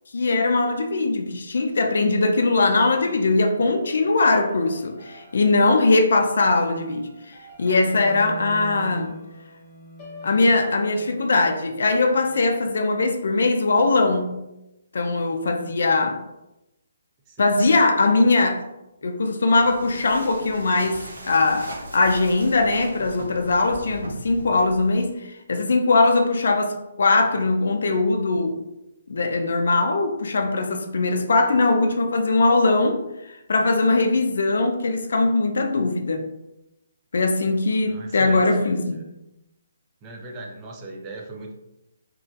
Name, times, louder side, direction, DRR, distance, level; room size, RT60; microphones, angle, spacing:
voice 1, 0.1-9.1 10.2-14.3 14.9-16.2 17.4-18.6 19.0-28.6 29.1-33.0 33.5-36.2 37.1-39.0, left 3 dB, 70° left, 4 dB, 0.4 m, -21 dB
sound 1, 2.8-12.4, equal, 20° left, 0.7 m, -42 dB
voice 2, 17.3-17.6 37.8-38.6 38.9-39.0 40.0-41.5, right 2 dB, 20° right, 0 dB, 0.4 m, -39 dB
sound 2, 19.5-25.1, right 1 dB, 90° right, 0.7 m, -40 dB
3.0 x 2.5 x 2.4 m, 0.92 s
hypercardioid pair, 165°, 0 cm